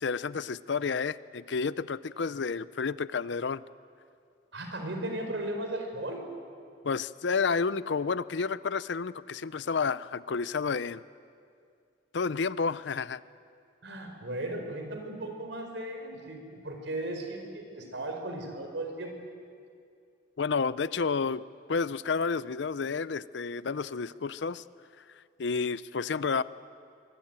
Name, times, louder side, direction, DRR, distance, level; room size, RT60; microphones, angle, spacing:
voice 1, 0.0-3.6 6.8-11.0 12.1-13.2 20.4-21.4 21.7-24.6 25.4-26.4, left 5 dB, 70° left, 17 dB, 0.5 m, -30 dB
voice 2, 4.5-6.2 13.8-19.1, right 1 dB, 80° right, 4 dB, 4.7 m, -36 dB
24.0 x 21.0 x 9.0 m, 2.3 s
head